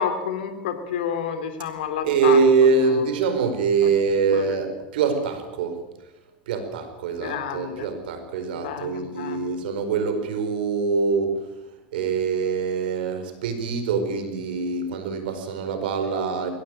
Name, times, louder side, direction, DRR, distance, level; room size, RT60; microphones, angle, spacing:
voice 1, 0.0-2.4 2.9-3.0 3.8-3.9 4.3-4.6 7.2-7.9 8.6-9.5, left 7 dB, 75° left, 7 dB, 3.0 m, -30 dB
voice 2, 2.0-5.8 6.5-11.5 11.9-16.5, right 5 dB, 75° right, 9 dB, 4.7 m, -24 dB
22.0 x 17.0 x 8.9 m, 0.98 s
hypercardioid pair, 100°, 5 cm